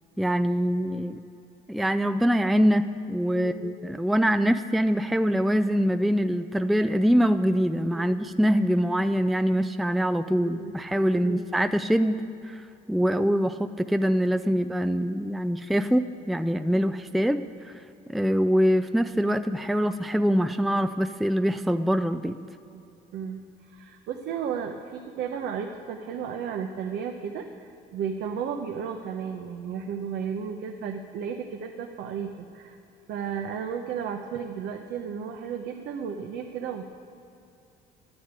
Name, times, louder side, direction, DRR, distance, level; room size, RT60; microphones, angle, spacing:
voice 1, 0.2-1.2 1.7-17.7 18.1-22.4, equal, ahead, 10 dB, 0.4 m, -24 dB
voice 2, 3.3-3.7 7.9-8.0 10.4-10.7 11.1-11.4 22.7-22.8 23.1-32.8 33.1-36.8, right 7 dB, 80° right, 4 dB, 1.0 m, -34 dB
11.5 x 10.0 x 8.9 m, 2.7 s
cardioid pair, 110°, 17 cm